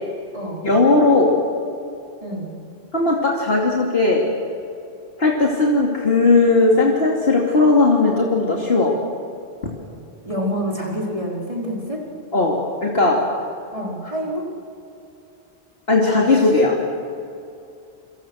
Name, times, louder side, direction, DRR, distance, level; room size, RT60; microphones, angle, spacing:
voice 1, 0.6-1.3 2.9-4.2 5.2-8.9 12.3-13.2 15.9-16.8, left 3 dB, 65° left, -2 dB, 2.9 m, -17 dB
voice 2, 10.2-12.0 13.7-14.5, equal, 30° right, -3 dB, 4.8 m, -27 dB
28.5 x 25.5 x 6.4 m, 2.6 s
omnidirectional pair, 1.1 m